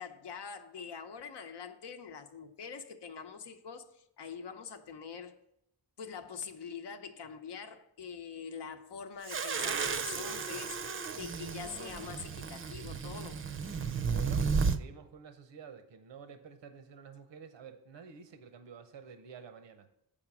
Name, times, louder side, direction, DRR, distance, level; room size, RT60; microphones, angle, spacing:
voice 1, 0.0-5.4 6.0-13.4, left 6 dB, 75° left, 0.8 m, -44 dB
sound 1, 9.3-14.8, right 5 dB, 30° right, 0.5 m, -33 dB
voice 2, 14.0-19.9, right 6 dB, 90° right, 0.7 m, -50 dB
7.1 x 4.9 x 5.9 m
cardioid pair, 75°, 42 cm